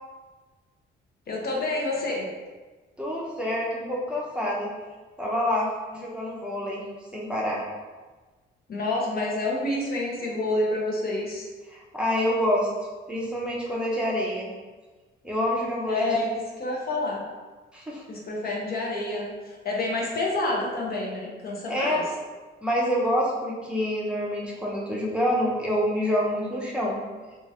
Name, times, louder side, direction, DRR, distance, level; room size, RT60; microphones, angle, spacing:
voice 1, 1.3-2.3 8.7-11.5 15.8-17.2 18.1-22.0, left 2 dB, 50° left, -2 dB, 0.7 m, -28 dB
voice 2, 3.0-4.7 5.2-6.8 7.1-7.6 11.7-12.7 13.1-14.5 15.2-16.1 17.7-18.0 21.7-22.0 22.6-27.0, equal, 5° right, -4 dB, 0.5 m, -27 dB
2.9 x 2.4 x 2.7 m, 1.3 s
cardioid pair, 90°, 20 cm